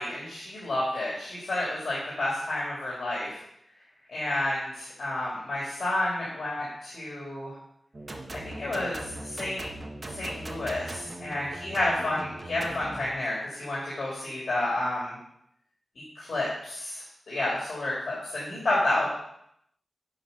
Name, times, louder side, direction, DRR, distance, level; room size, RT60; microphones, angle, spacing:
voice 1, 0.0-3.3 4.1-7.5 8.3-9.6 10.1-13.3 13.6-15.2 16.2-19.1, left 1 dB, 75° left, -7 dB, 3.3 m, -30 dB
sound 1, 7.9-13.1, right 1 dB, 40° right, 1.4 m, -40 dB
8.7 x 5.5 x 5.5 m, 0.74 s
cardioid pair, 65°, 0 cm